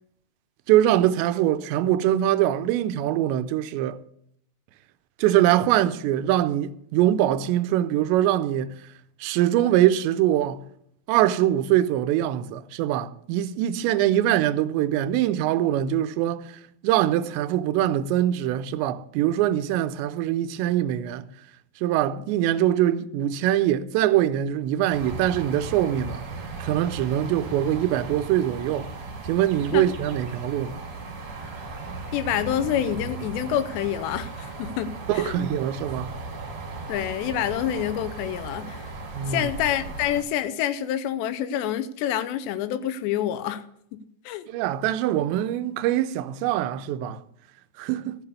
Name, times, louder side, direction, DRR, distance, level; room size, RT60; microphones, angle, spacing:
voice 1, 0.7-4.0 5.2-8.7 9.2-10.6 11.1-21.3 21.8-26.3 26.6-28.9 29.2-30.8 35.1-36.1 39.1-39.5 44.5-47.2 47.8-48.2, right 12 dB, 90° right, 2.9 m, -23 dB
sound 1, 24.9-40.2, right 3 dB, 45° right, 2.4 m, -37 dB
voice 2, 32.1-35.5 36.9-38.9 39.3-43.6 43.9-44.0 44.3-44.5, left 10 dB, 85° left, 2.9 m, -27 dB
14.0 x 6.8 x 6.8 m
omnidirectional pair, 5.0 m